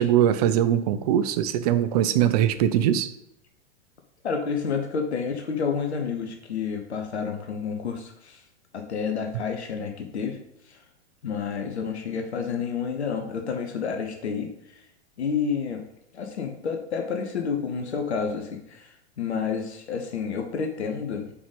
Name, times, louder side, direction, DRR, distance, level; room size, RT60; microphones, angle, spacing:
voice 1, 0.0-3.1, right 10 dB, 35° right, 12 dB, 0.5 m, -21 dB
voice 2, 4.2-8.4 8.7-10.4 10.7-10.8 11.2-14.8 15.2-15.8 16.1-21.3, left 6 dB, 65° left, 4 dB, 1.0 m, -30 dB
5.1 x 5.0 x 5.1 m, 0.76 s
figure-of-eight pair, 105°, 35 cm